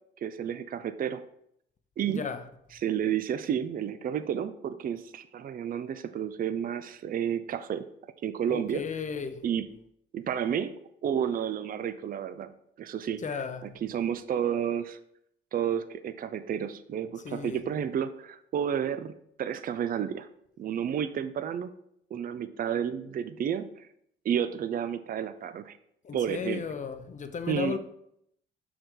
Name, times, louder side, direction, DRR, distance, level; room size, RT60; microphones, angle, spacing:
voice 1, 0.2-1.2 2.0-2.2 2.7-7.8 8.2-8.8 9.4-9.7 10.1-12.5 12.8-13.2 13.6-15.0 15.5-19.1 19.4-20.3 20.6-21.7 22.1-23.9 24.2-25.8 26.1-26.6 27.5-27.8, right 9 dB, 45° right, 0.5 m, -31 dB
voice 2, 2.1-2.4 8.5-9.4 13.2-13.8 17.2-17.6 26.0-27.8, left 6 dB, 40° left, 0.7 m, -34 dB
6.3 x 4.7 x 3.8 m
cardioid pair, 90°, 20 cm